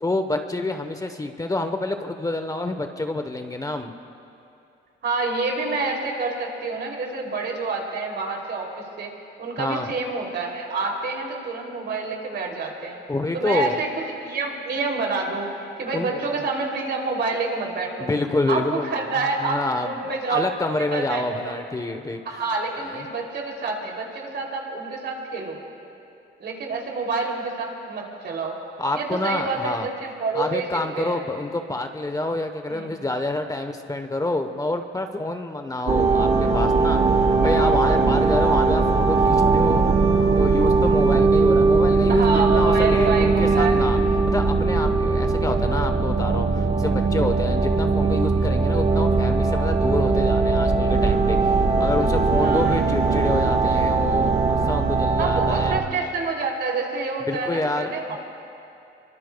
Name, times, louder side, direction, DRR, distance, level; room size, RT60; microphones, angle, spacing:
voice 1, 0.0-3.9 9.6-9.9 13.1-13.8 15.9-16.2 18.0-19.1 19.4-22.2 22.8-23.1 28.8-29.9 30.3-39.9 40.4-42.3 42.5-44.0 44.3-55.7 57.3-58.2, left 2 dB, 20° left, 6 dB, 1.0 m, -28 dB
voice 2, 5.0-9.1 9.4-13.0 13.3-13.9 14.1-15.5 15.8-18.1 18.5-20.5 20.9-21.5 22.2-25.6 26.4-28.6 28.9-30.7 31.0-31.2 32.7-32.9 37.4-38.1 42.1-43.8 52.4-52.8 55.2-58.2, right 3 dB, 60° right, 0 dB, 3.0 m, -28 dB
sound 1, 35.9-55.8, right 4 dB, 35° right, 1.5 m, -20 dB
25.0 x 23.5 x 2.3 m, 2.8 s
cardioid pair, 90°, 20 cm